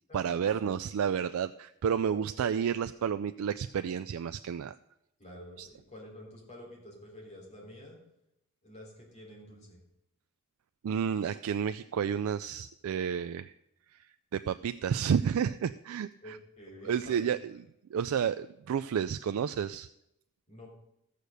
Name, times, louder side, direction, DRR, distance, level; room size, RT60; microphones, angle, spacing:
voice 1, 0.1-4.8 5.6-5.7 10.8-13.5 13.9-16.4 16.8-17.5 17.9-19.9, right 7 dB, 70° right, 11 dB, 0.3 m, -31 dB
voice 2, 2.1-2.6 5.2-8.0 8.6-9.8 16.2-17.3 20.5-20.7, left 1 dB, 30° left, -1 dB, 3.5 m, -49 dB
14.0 x 6.6 x 6.6 m, 0.83 s
head